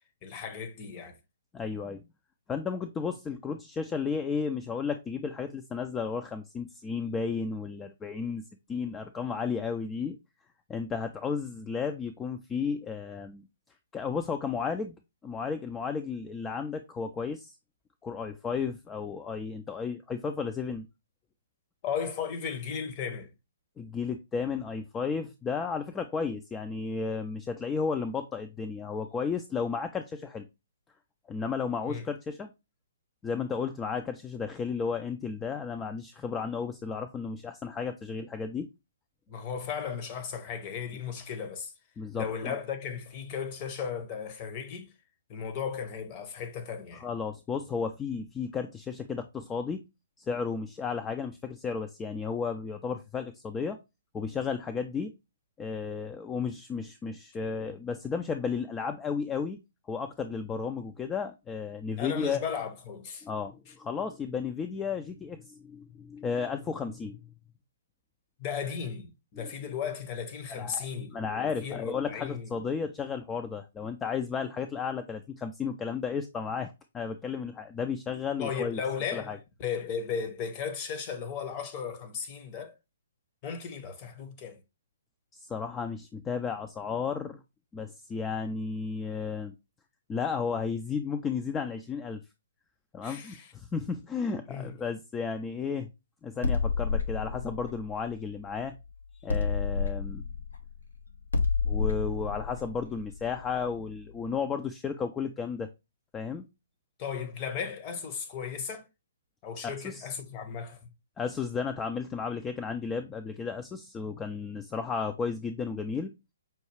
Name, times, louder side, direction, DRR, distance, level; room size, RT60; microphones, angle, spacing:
voice 1, 0.2-1.2 21.8-23.3 31.8-32.1 39.3-41.7 42.1-44.9 45.3-47.1 62.0-63.3 68.4-72.5 78.4-82.7 83.4-84.6 93.0-93.5 94.5-94.8 107.0-108.9 109.4-110.8, left 7 dB, 30° left, 0.8 m, -36 dB
voice 2, 1.5-2.0 2.5-8.4 8.7-10.2 10.7-13.4 13.9-14.9 15.2-17.6 18.0-20.9 23.8-30.4 31.3-32.5 33.2-38.7 42.0-42.5 47.0-49.8 50.2-53.8 54.1-55.1 55.6-59.6 59.9-62.4 63.2-67.2 69.4-69.5 70.5-78.8 79.1-79.4 85.3-87.4 87.7-89.5 90.1-92.2 92.9-95.9 96.2-98.7 99.2-100.2 101.6-105.7 106.1-106.5 109.6-110.1 111.2-116.1, left 5 dB, 15° left, 0.3 m, -33 dB
sound 1, 96.4-98.8 99.3-103.9, left 5 dB, 80° left, 0.8 m, -30 dB
5.5 x 2.3 x 3.1 m
figure-of-eight pair, 130°, 0 cm